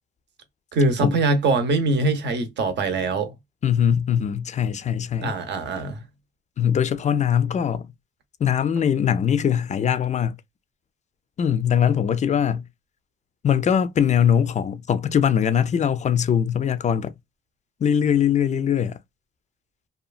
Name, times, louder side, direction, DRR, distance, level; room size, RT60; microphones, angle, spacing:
voice 1, 0.7-3.3 5.2-6.0, right 2 dB, 60° right, 0.8 m, -22 dB
voice 2, 3.6-5.3 6.6-7.9 8.4-10.3 11.4-12.6 13.4-17.1 17.8-19.0, left 8 dB, 35° left, 0.4 m, -21 dB
2.7 x 2.3 x 2.3 m
cardioid pair, 90°, 20 cm